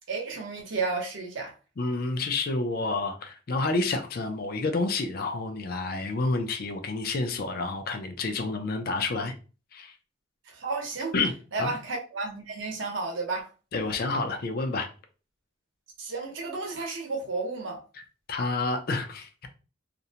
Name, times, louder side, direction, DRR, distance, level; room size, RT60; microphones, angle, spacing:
voice 1, 0.1-1.5 10.5-11.1 11.5-13.5 16.0-17.8, right 3 dB, 80° right, 0.8 m, -32 dB
voice 2, 1.8-9.3 9.7-9.9 11.1-11.7 13.7-14.9 18.3-19.3, left 3 dB, 50° left, 0.4 m, -29 dB
2.5 x 2.0 x 2.8 m
head